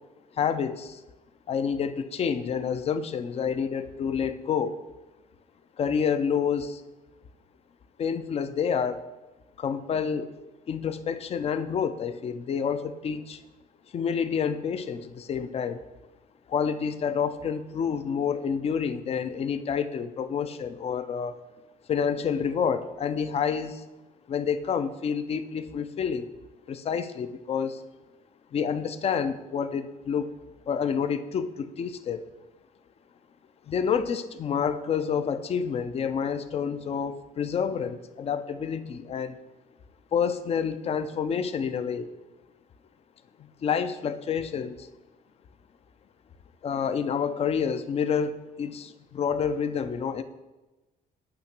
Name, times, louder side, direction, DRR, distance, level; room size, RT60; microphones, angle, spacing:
voice 1, 0.3-1.0 1.5-4.8 5.8-6.8 8.0-9.0 9.6-10.3 10.7-13.4 13.9-15.8 16.5-21.3 21.9-23.8 24.3-26.3 26.7-27.8 28.5-30.3 30.7-32.2 33.7-39.4 40.1-42.1 43.4-44.9 46.6-50.2, left 7 dB, 35° left, 12 dB, 0.5 m, -28 dB
8.7 x 2.9 x 5.9 m, 1.1 s
cardioid pair, 110°, 17 cm